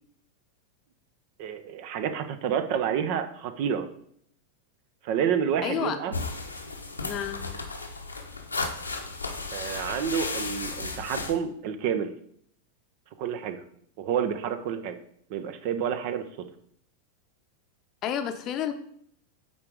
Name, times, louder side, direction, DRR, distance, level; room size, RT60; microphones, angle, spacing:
voice 1, 1.4-3.9 5.0-6.1 9.5-12.1 13.2-13.6 14.0-15.0 15.3-16.3, right 8 dB, 45° right, 9 dB, 0.7 m, -29 dB
voice 2, 5.6-6.0 7.0-7.4 18.0-18.7, left 9 dB, 35° left, 8 dB, 0.7 m, -30 dB
sound 1, 6.1-11.3, left 3 dB, 80° left, 0.9 m, -34 dB
8.6 x 3.9 x 4.7 m, 0.66 s
figure-of-eight pair, 90°, 0 cm